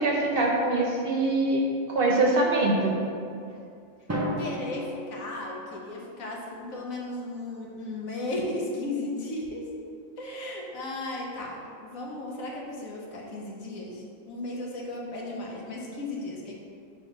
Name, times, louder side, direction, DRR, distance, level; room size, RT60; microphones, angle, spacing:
voice 1, 0.0-2.9, right 2 dB, 50° right, -2 dB, 0.9 m, -24 dB
Drum, 4.1-6.1, equal, 25° right, 0.3 m, -33 dB
voice 2, 4.4-9.6 10.2-16.5, left 2 dB, 90° left, -2 dB, 1.4 m, -35 dB
5.0 x 3.7 x 5.3 m, 2.4 s
omnidirectional pair, 1.4 m